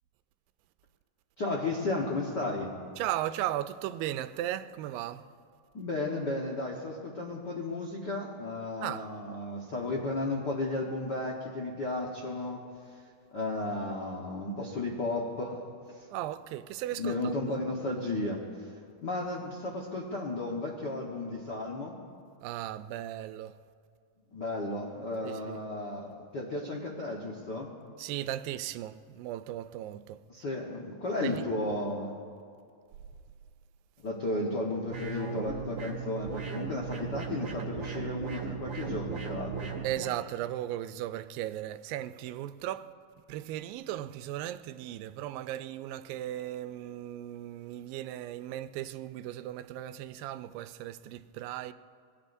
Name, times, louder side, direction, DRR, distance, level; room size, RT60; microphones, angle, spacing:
voice 1, 1.4-2.7 5.7-12.7 13.3-16.1 16.9-18.7 19.0-22.0 24.3-27.7 30.3-32.1 34.0-39.7, left 2 dB, 70° left, 1.0 m, -34 dB
voice 2, 3.0-5.3 8.8-9.1 16.1-17.6 22.4-23.6 25.2-25.6 28.0-30.2 31.2-31.4 39.8-42.9 43.3-51.7, right 13 dB, 85° right, 2.3 m, -36 dB
sound 1, 34.9-40.2, right 6 dB, 40° right, 2.2 m, -37 dB
26.0 x 20.5 x 2.6 m
omnidirectional pair, 4.1 m